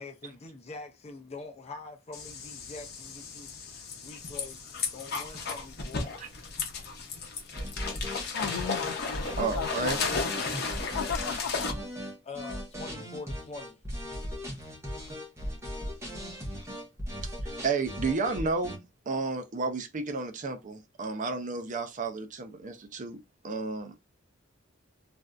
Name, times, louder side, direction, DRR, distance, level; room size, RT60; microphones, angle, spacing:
voice 1, 0.0-3.5 4.0-4.6 4.9-6.2 12.2-13.8, left 3 dB, 30° left, 0.5 m, -44 dB
sound 1, 2.1-11.7, left 4 dB, 55° left, 0.8 m, -35 dB
sound 2, 7.5-18.8, equal, 15° right, 1.0 m, -37 dB
voice 2, 8.3-10.3 11.0-11.5, left 8 dB, 85° left, 0.3 m, -36 dB
voice 3, 9.3-10.0 17.2-17.3 17.6-24.0, right 4 dB, 40° right, 0.5 m, -32 dB
3.3 x 2.5 x 2.3 m
head